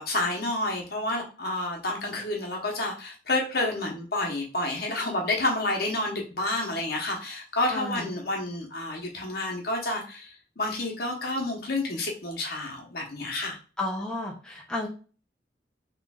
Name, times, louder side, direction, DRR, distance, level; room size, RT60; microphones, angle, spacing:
voice 1, 0.0-13.6, left 2 dB, 60° left, 0 dB, 1.0 m, -29 dB
voice 2, 7.7-8.1 13.8-14.9, left 2 dB, 5° left, -2 dB, 0.6 m, -32 dB
3.8 x 3.1 x 2.3 m, 0.36 s
head